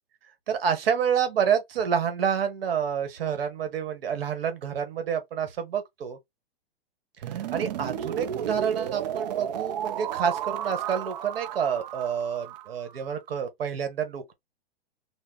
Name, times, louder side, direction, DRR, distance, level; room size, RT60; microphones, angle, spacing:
voice 1, 0.5-6.2 7.3-14.3, right 7 dB, 70° right, 1.3 m, -28 dB
sound 1, 7.2-13.1, right 10 dB, 45° right, 0.5 m, -33 dB
4.3 x 2.0 x 3.8 m
hypercardioid pair, 165°, 30 cm